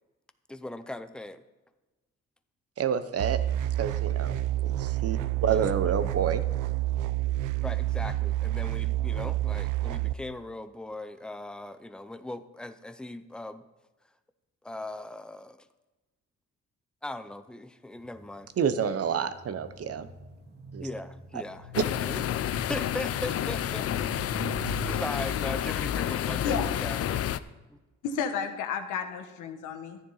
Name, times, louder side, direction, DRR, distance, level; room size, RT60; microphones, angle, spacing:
voice 1, 0.5-1.4 5.5-5.7 7.6-13.6 14.6-15.6 17.0-18.5 20.8-22.2 22.7-27.2 27.7-27.8, left 1 dB, 5° left, 10 dB, 0.6 m, -39 dB
voice 2, 2.8-3.4 3.8-4.4 4.6-6.4 18.6-20.1 20.7-20.9 21.3-21.4 21.7-21.8, right 7 dB, 50° right, 12 dB, 0.8 m, -28 dB
sound 1, 3.2-10.1, right 14 dB, 80° right, 0.5 m, -28 dB
sound 2, 17.9-25.7, right 3 dB, 35° right, 2.0 m, -44 dB
sound 3, 21.7-27.4, left 11 dB, 50° left, 0.5 m, -30 dB
voice 3, 28.0-30.0, left 6 dB, 90° left, 7 dB, 1.2 m, -32 dB
11.5 x 9.8 x 4.0 m, 1.1 s
cardioid pair, 90°, 30 cm